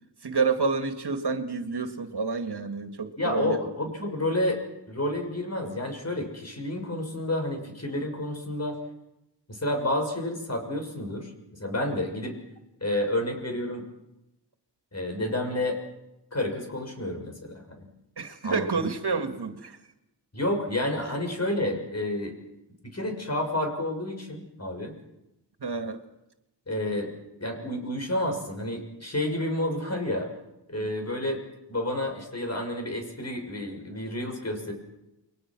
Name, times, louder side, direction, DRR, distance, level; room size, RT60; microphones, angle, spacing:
voice 1, 0.2-3.6 18.2-19.8 25.6-26.0 30.8-30.9, right 4 dB, 65° right, 7 dB, 2.2 m, -29 dB
voice 2, 3.2-8.8 9.5-11.3 11.6-12.4 12.8-13.8 14.9-15.8 16.3-17.9 18.4-18.9 20.3-22.3 22.8-24.9 26.7-27.1 27.4-30.3 30.7-31.4 31.7-34.7, left 1 dB, 35° left, 4 dB, 6.7 m, -30 dB
30.0 x 22.5 x 6.3 m, 0.91 s
wide cardioid pair, 100°, 42 cm